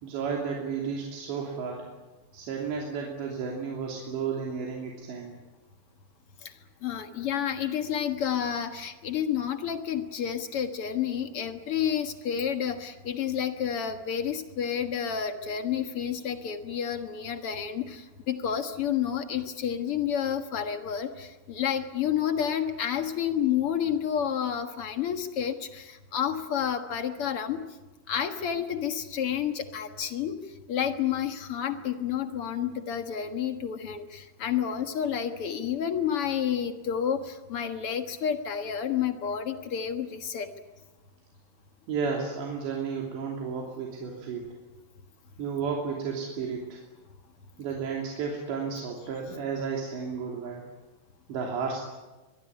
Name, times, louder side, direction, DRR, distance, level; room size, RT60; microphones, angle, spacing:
voice 1, 0.0-1.9 2.3-5.4 41.9-44.6 45.4-46.8 47.6-50.6 51.3-51.8, right 5 dB, 85° right, 0 dB, 5.2 m, -32 dB
voice 2, 6.4-27.7 28.1-40.5, left 8 dB, 70° left, 7 dB, 1.3 m, -30 dB
23.5 x 23.0 x 9.8 m, 1.1 s
omnidirectional pair, 4.9 m